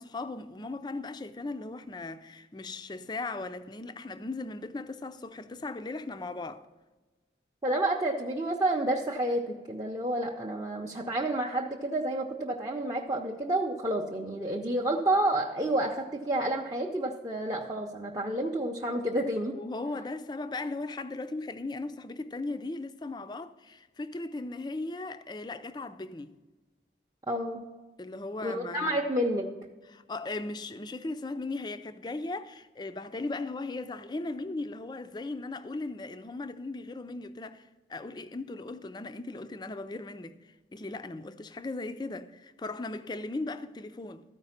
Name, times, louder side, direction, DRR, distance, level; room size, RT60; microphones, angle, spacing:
voice 1, 0.0-6.7 19.5-26.3 28.0-28.9 29.9-40.4 40.7-44.2, left 2 dB, 25° left, 0.4 m, -37 dB
voice 2, 7.6-19.6 27.3-27.7 28.4-29.5, right 1 dB, 20° right, 0.6 m, -29 dB
13.5 x 5.0 x 5.7 m
head